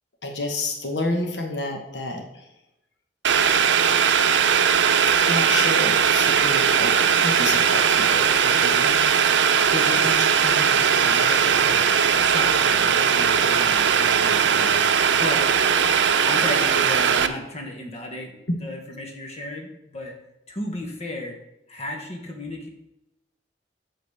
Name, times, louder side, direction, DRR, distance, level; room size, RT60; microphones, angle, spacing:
voice 1, 0.2-2.5 5.1-6.9 7.2-9.0 10.0-10.1 18.5-18.6, left 2 dB, 70° left, 3 dB, 1.2 m, -29 dB
Boiling, 3.2-17.3, right 7 dB, 90° right, 0.5 m, -19 dB
voice 2, 9.7-10.1 10.4-14.9 15.2-15.5 16.2-20.1 20.5-21.4 21.7-22.7, left 1 dB, 40° left, 1 dB, 1.3 m, -34 dB
8.5 x 4.0 x 6.8 m, 0.86 s
head